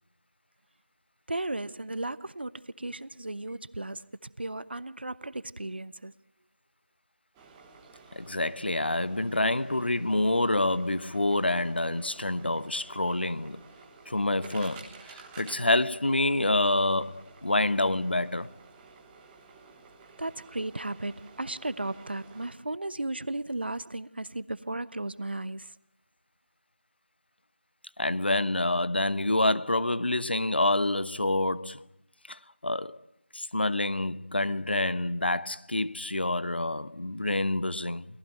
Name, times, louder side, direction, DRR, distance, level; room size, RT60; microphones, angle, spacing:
voice 1, 1.3-4.1 4.4-6.1 20.2-25.7, right 2 dB, 60° right, 1.0 m, -35 dB
sound 1, 7.3-22.5, right 4 dB, 5° right, 1.1 m, -52 dB
voice 2, 8.1-13.6 14.1-18.5 28.0-31.8 32.3-33.0 33.3-38.1, left 2 dB, 60° left, 1.1 m, -27 dB
28.5 x 19.0 x 9.0 m
figure-of-eight pair, 170°, 6 cm